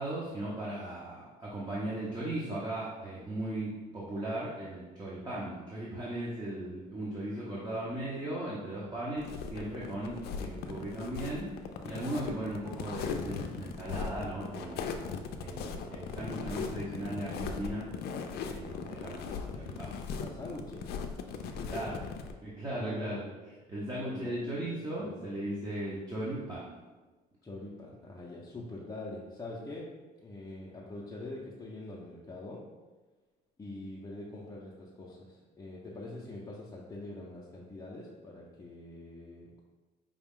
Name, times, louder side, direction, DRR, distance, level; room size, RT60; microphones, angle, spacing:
voice 1, 0.0-11.5 11.8-14.8 15.4-17.9 18.5-19.9 21.7-22.0 22.4-23.2 23.7-26.7, right 1 dB, 25° right, -7 dB, 0.9 m, -37 dB
voice 2, 7.4-8.0 20.1-20.9 21.3-21.9 22.8-23.4 23.9-25.3 27.4-29.9 30.2-32.7 33.6-39.6, left 2 dB, 20° left, -6 dB, 0.6 m, -44 dB
sound 1, 9.2-22.3, left 6 dB, 70° left, 0.4 m, -39 dB
Thunder, 10.0-21.8, right 3 dB, 65° right, 0.6 m, -55 dB
5.0 x 2.3 x 3.6 m, 1.2 s
cardioid pair, 110°, 17 cm